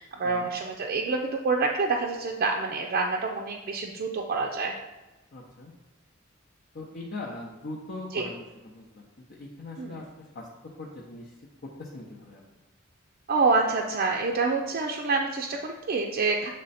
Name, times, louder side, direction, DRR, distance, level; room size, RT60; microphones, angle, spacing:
voice 1, 0.0-4.7 8.1-8.3 9.8-10.0 13.3-16.5, right 3 dB, 45° right, 1 dB, 0.4 m, -27 dB
voice 2, 5.3-5.7 6.7-10.5 10.8-11.3 11.6-12.4, left 2 dB, 55° left, -3 dB, 0.7 m, -41 dB
7.5 x 3.2 x 4.1 m, 1.1 s
head